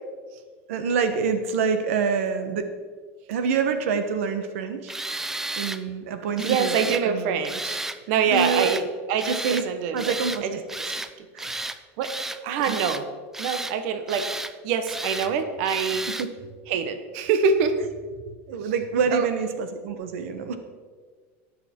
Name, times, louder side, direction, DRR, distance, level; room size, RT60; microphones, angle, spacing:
voice 1, 0.7-2.7 3.3-4.9 5.6-7.3 8.2-8.8 9.2-9.6 9.9-10.6 11.3-11.6 12.7-12.9 15.2-15.3 16.2-16.3 18.5-20.6, right 6 dB, 85° right, 8 dB, 1.1 m, -26 dB
Tools, 4.9-5.8 6.4-7.0 7.4-8.0 8.3-8.8 9.2-9.7 10.0-10.4 10.7-11.1 11.4-11.8 12.0-13.0 13.3-13.8 14.1-14.5 14.9-15.3 15.7-16.3, right 2 dB, 5° right, 0.4 m, -32 dB
voice 2, 6.4-7.8 8.1-8.8 9.1-10.1 10.4-10.5 11.2-11.3 12.0-13.0 13.4-14.3 14.6-16.1 16.7-17.8 19.1-19.3, right 6 dB, 60° right, 8 dB, 1.1 m, -25 dB
18.5 x 7.0 x 4.4 m, 1.5 s
supercardioid pair, 150°, 7 cm